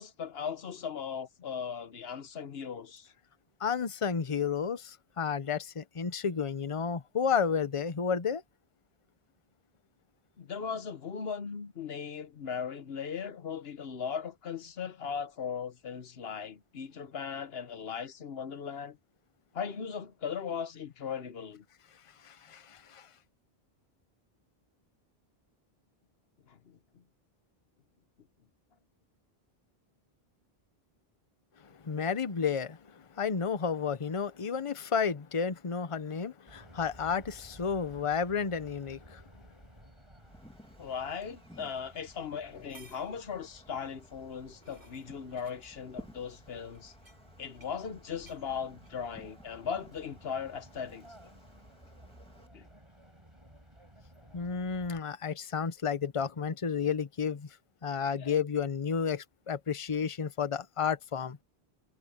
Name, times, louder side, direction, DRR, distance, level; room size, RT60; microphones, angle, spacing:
voice 1, 0.0-3.1 10.4-19.0 19.5-21.6 26.5-27.0 40.8-46.9 47.4-51.1 52.5-52.7 58.2-58.4, left 7 dB, 70° left, 1.3 m, -38 dB
voice 2, 3.6-8.4 22.2-23.1 31.6-39.2 54.3-57.6 57.8-61.4, left 6 dB, 35° left, 0.9 m, -32 dB
sound 1, 36.5-55.0, right 1 dB, 25° right, 6.8 m, -56 dB
Wind, 40.1-52.5, equal, 5° left, 2.4 m, -57 dB
sound 2, 40.9-41.0 41.9-42.0 42.4-43.2 44.2-45.7 46.7-47.8 48.1-48.4 48.8-49.1, right 2 dB, 60° right, 5.5 m, -59 dB
omnidirectional pair, 1.1 m